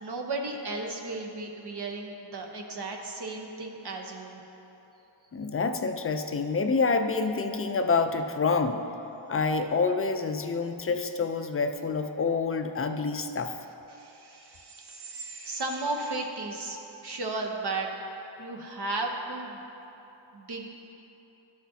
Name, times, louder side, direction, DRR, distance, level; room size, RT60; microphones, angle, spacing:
voice 1, 0.0-4.4 13.9-17.9 18.4-19.7 20.3-20.7, right 2 dB, 55° right, 1 dB, 1.0 m, -35 dB
voice 2, 5.3-8.8 9.3-13.6, left 4 dB, 30° left, 7 dB, 0.4 m, -27 dB
12.5 x 6.2 x 2.7 m, 3.0 s
wide cardioid pair, 95°, 47 cm